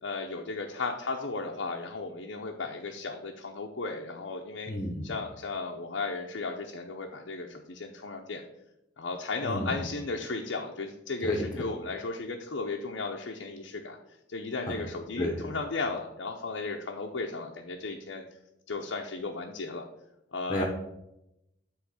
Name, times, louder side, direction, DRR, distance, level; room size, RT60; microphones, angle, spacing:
voice 1, 0.0-4.7 5.0-8.4 9.0-14.0 14.3-18.2 18.7-19.9 20.3-20.6, left 3 dB, 85° left, 1 dB, 0.6 m, -35 dB
voice 2, 4.7-5.1 9.4-9.8 11.2-11.7 15.2-15.5 20.5-20.6, left 1 dB, 20° left, -2 dB, 0.8 m, -31 dB
8.0 x 3.1 x 6.3 m, 0.86 s
head